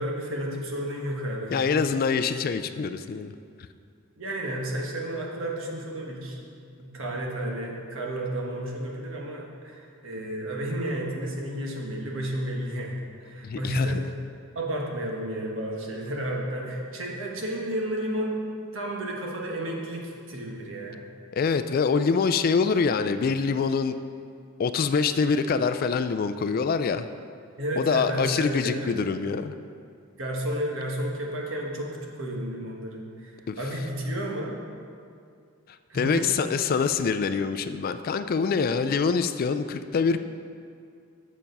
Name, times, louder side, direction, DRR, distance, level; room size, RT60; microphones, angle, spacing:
voice 1, 0.0-1.7 4.2-6.4 6.8-14.0 14.5-18.4 18.7-21.0 27.6-29.1 30.2-34.5 35.9-36.3, right 1 dB, 70° right, -1 dB, 1.3 m, -32 dB
voice 2, 1.5-3.3 13.4-14.0 21.3-24.0 24.6-27.1 27.8-29.5 33.5-33.6 35.7-40.2, left 5 dB, 45° left, 10 dB, 0.3 m, -25 dB
7.3 x 6.8 x 5.3 m, 2.3 s
head